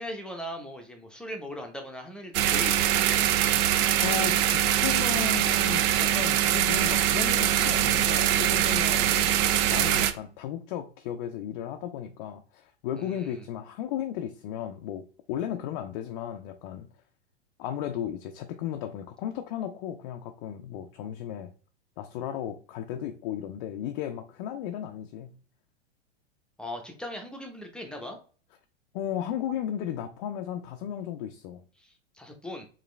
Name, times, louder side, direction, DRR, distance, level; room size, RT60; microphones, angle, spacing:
voice 1, 0.0-3.3 13.0-13.4 26.6-28.2 31.8-32.7, left 1 dB, 5° left, 0.9 m, -39 dB
sound 1, 2.3-10.1, right 11 dB, 35° right, 0.5 m, -23 dB
voice 2, 4.0-4.4 4.8-9.4 9.7-16.9 17.6-21.5 22.0-25.3 28.9-31.6, left 10 dB, 45° left, 0.6 m, -35 dB
4.9 x 3.0 x 3.2 m
hypercardioid pair, 105°, 33 cm